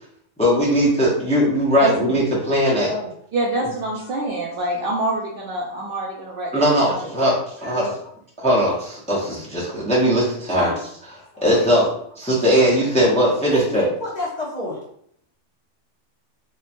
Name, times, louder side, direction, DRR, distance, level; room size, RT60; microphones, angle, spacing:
voice 1, 0.4-2.9 6.5-7.9 8.4-10.7 11.4-11.9 12.2-13.9, equal, 10° left, -6 dB, 0.4 m, -19 dB
voice 2, 1.8-2.1 3.3-7.1, right 2 dB, 60° right, -3 dB, 0.6 m, -25 dB
voice 3, 7.2-7.8 9.7-9.8 10.5-10.8 11.3-11.6 12.3-12.4 13.5-14.8, equal, 40° left, -6 dB, 0.7 m, -30 dB
3.0 x 2.2 x 2.5 m, 0.66 s
omnidirectional pair, 1.2 m